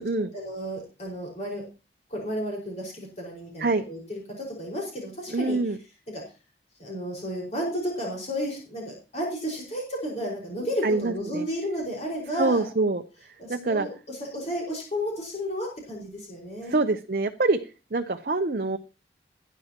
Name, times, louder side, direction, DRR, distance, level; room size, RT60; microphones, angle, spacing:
voice 1, 0.0-1.6 2.1-5.6 6.1-6.2 6.8-12.7 13.4-16.8, equal, 40° left, -2 dB, 5.1 m, -32 dB
voice 2, 5.3-5.8 10.8-11.5 12.4-13.9 16.6-17.6 17.9-18.8, right 3 dB, 50° right, 6 dB, 0.7 m, -25 dB
17.5 x 11.0 x 3.0 m, 0.31 s
head